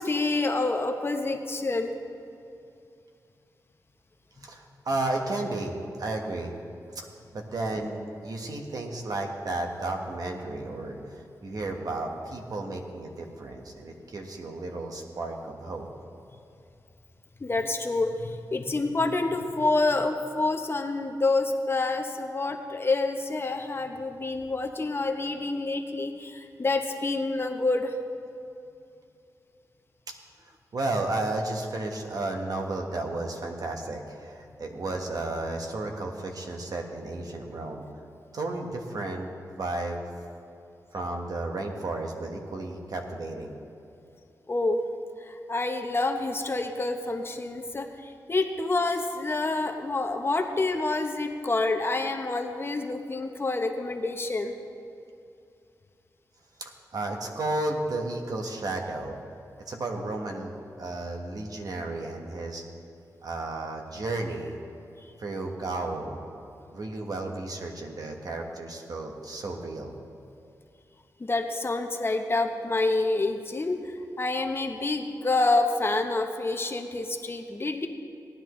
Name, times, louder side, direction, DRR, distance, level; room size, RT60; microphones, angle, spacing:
voice 1, 0.0-1.9 17.4-27.9 44.5-44.8 45.3-54.5 71.2-73.8 74.2-77.9, left 2 dB, 35° left, 4 dB, 0.9 m, -27 dB
voice 2, 4.4-6.6 6.9-7.0 7.3-15.9 30.1-30.2 30.5-37.8 38.3-40.0 40.9-43.5 56.6-59.1 59.7-62.6 63.2-64.6 65.2-66.2 66.7-69.9, right 2 dB, 60° right, 2 dB, 1.4 m, -33 dB
18.0 x 10.5 x 3.2 m, 2.6 s
wide cardioid pair, 85°, 7 cm